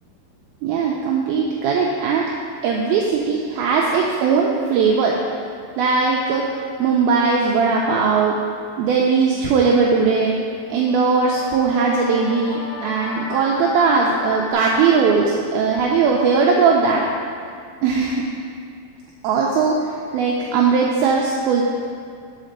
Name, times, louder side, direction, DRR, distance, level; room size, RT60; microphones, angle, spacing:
voice 1, 0.6-2.2 2.6-5.2 5.8-6.4 6.8-8.3 8.8-10.3 10.7-17.0 17.8-18.2 19.2-19.7 20.1-21.6, right 5 dB, 80° right, -2 dB, 2.2 m, -19 dB
sound 1, 10.4-14.5, left 2 dB, 60° left, 2.8 m, -35 dB
5.7 x 5.1 x 6.6 m, 2.3 s
omnidirectional pair, 4.7 m